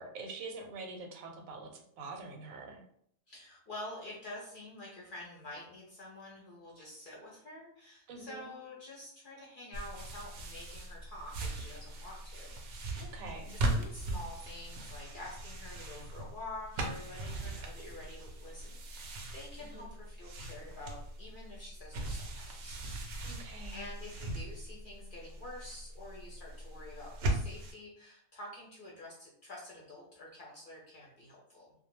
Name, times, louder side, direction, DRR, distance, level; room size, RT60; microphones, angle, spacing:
voice 1, 0.0-2.8 8.1-8.5 13.0-13.6 19.6-19.9 23.2-23.9, right 3 dB, 85° right, 3 dB, 1.0 m, -45 dB
voice 2, 3.3-12.5 12.8-13.2 13.5-31.7, left 1 dB, 55° left, -4 dB, 0.6 m, -48 dB
sound 1, 9.7-27.7, right 1 dB, 65° right, 0.7 m, -39 dB
2.3 x 2.2 x 3.0 m, 0.67 s
omnidirectional pair, 1.4 m